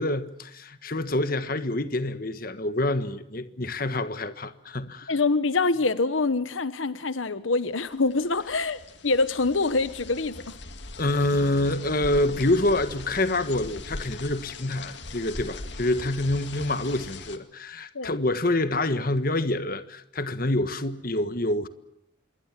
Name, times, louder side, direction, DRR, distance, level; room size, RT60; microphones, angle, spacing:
voice 1, 0.0-5.1 11.0-21.7, left 2 dB, 45° left, 1.5 m, -27 dB
voice 2, 5.1-10.6 17.9-18.1, left 3 dB, 80° left, 1.1 m, -25 dB
sound 1, 7.9-17.4, left 3 dB, 65° left, 2.2 m, -41 dB
26.5 x 22.0 x 7.4 m
head